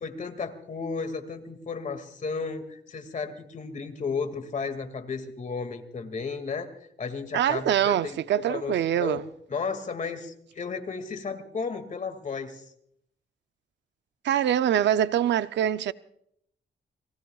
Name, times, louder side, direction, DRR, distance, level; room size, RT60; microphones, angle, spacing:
voice 1, 0.0-6.7 7.0-9.2 9.5-12.7, left 5 dB, 45° left, 2.2 m, -34 dB
voice 2, 7.3-9.2 14.2-15.9, right 10 dB, 90° right, 0.6 m, -24 dB
29.5 x 20.5 x 2.4 m
cardioid pair, 115°, 18 cm